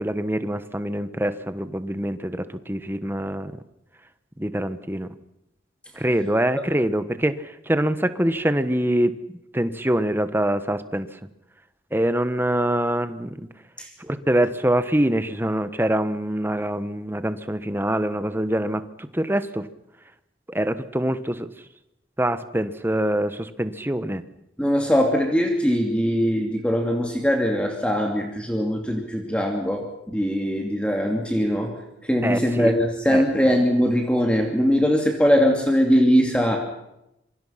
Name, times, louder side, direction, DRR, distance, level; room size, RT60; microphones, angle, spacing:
voice 1, 0.0-3.5 4.4-5.1 6.0-9.2 9.5-11.1 11.9-13.5 14.0-19.7 20.5-21.5 22.2-24.2 32.2-32.7 33.1-33.2, right 1 dB, 10° right, 11 dB, 1.3 m, -24 dB
voice 2, 24.6-31.8 32.0-36.6, equal, 5° left, 2 dB, 2.6 m, -21 dB
27.0 x 24.0 x 5.9 m, 0.86 s
head